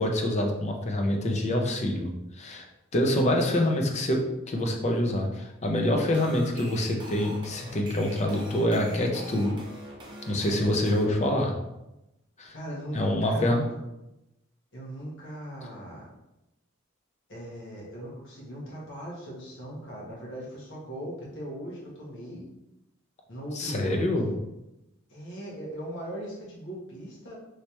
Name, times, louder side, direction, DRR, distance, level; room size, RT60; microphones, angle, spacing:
voice 1, 0.0-2.6 2.9-9.5 10.3-11.5 12.4-12.5 12.9-13.6 23.5-24.3, left 1 dB, 35° left, 1 dB, 0.5 m, -26 dB
sound 1, 6.0-11.1, right 1 dB, 20° right, 0.7 m, -44 dB
voice 2, 12.5-13.7 14.7-16.1 17.3-22.5 23.3-24.4 25.1-27.3, equal, 60° left, -5 dB, 1.3 m, -39 dB
3.2 x 3.2 x 2.9 m, 0.92 s
head